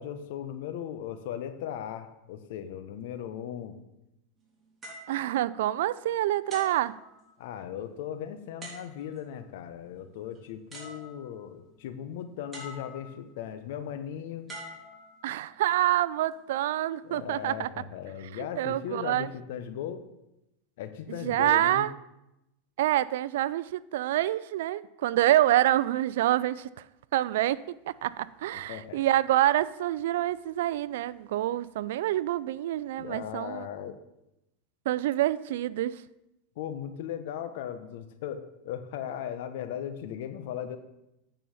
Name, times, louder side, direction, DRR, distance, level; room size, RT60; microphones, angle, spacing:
voice 1, 0.0-3.8 7.4-14.5 17.0-20.0 20.8-21.9 28.5-29.0 33.0-34.0 36.6-40.8, left 9 dB, 70° left, 10 dB, 1.0 m, -37 dB
sound 1, 4.8-6.0 6.5-7.7 8.6-9.3 10.3-10.4 10.7-11.5 12.5-13.3 14.5-15.6 16.3-16.6, equal, 20° right, 3.5 m, -46 dB
voice 2, 5.1-7.0 15.2-17.7 18.6-19.3 21.1-21.9 22.8-26.7 27.1-27.6 27.9-33.7 34.9-36.0, right 14 dB, 75° right, 19 dB, 0.4 m, -27 dB
9.1 x 5.5 x 7.1 m, 0.88 s
supercardioid pair, 120°, 0 cm